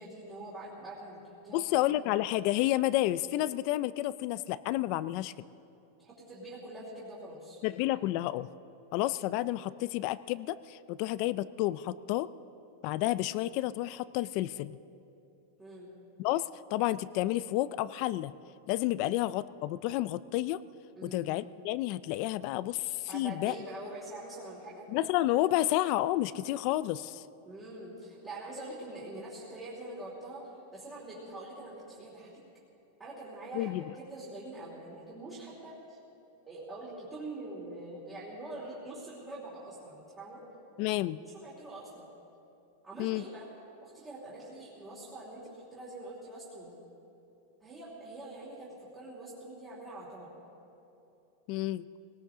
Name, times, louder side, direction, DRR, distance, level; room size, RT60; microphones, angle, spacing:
voice 1, 0.0-1.9 6.0-7.6 15.6-15.9 19.0-19.1 21.0-21.3 23.1-24.9 27.4-30.4 30.7-32.3 33.0-36.0 36.5-40.4 41.3-42.1 42.8-43.5 43.8-46.7 47.6-50.3, right 2 dB, 15° right, -7 dB, 3.0 m, -44 dB
voice 2, 1.5-5.3 7.6-8.5 8.9-12.3 12.8-14.8 16.2-18.3 18.7-20.6 21.0-23.5 24.9-27.2 33.5-33.8 40.8-41.2 43.0-43.2 51.5-51.9, left 15 dB, 40° left, 16 dB, 0.3 m, -30 dB
20.5 x 19.0 x 3.7 m, 2.9 s
supercardioid pair, 165°, 0 cm